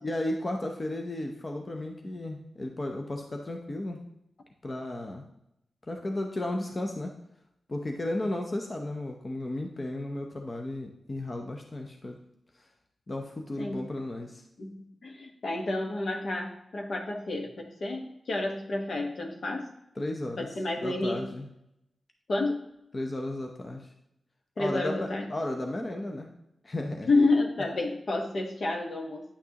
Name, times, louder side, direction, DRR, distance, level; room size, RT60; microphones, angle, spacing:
voice 1, 0.0-4.0 4.6-5.2 5.9-7.1 7.7-12.2 12.5-12.7 13.1-14.4 20.0-20.5 20.8-21.5 22.9-23.9 24.6-26.3 26.6-27.1, left 1 dB, 35° left, 3 dB, 0.7 m, -34 dB
voice 2, 14.6-19.7 20.4-21.2 22.3-22.6 24.6-25.3 27.1-29.2, left 2 dB, 65° left, 2 dB, 1.2 m, -30 dB
9.8 x 6.0 x 2.9 m, 0.83 s
cardioid pair, 75°, 0 cm